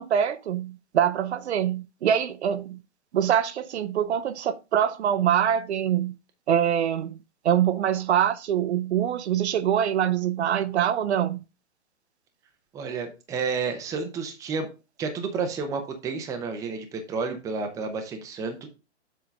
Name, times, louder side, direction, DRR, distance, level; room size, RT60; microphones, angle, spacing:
voice 1, 0.0-2.8 3.1-6.1 6.5-7.2 7.4-11.4, right 9 dB, 65° right, 0.8 m, -24 dB
voice 2, 12.7-14.7 15.0-18.7, right 5 dB, 10° right, 0.7 m, -31 dB
7.3 x 3.8 x 5.2 m
hypercardioid pair, 150°, 36 cm